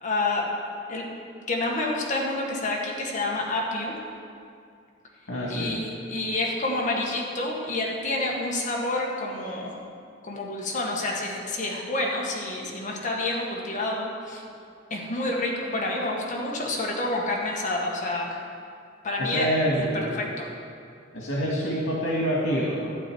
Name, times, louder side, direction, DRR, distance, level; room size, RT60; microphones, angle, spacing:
voice 1, 0.0-0.5 0.9-1.1 1.5-4.0 5.5-9.7 10.2-14.4 14.9-18.4 19.0-19.9 20.2-20.5, left 2 dB, 40° left, -2 dB, 1.7 m, -28 dB
voice 2, 5.3-5.8 19.2-20.1 21.1-23.0, equal, 90° left, -3 dB, 1.8 m, -26 dB
12.0 x 9.3 x 4.6 m, 2.3 s
head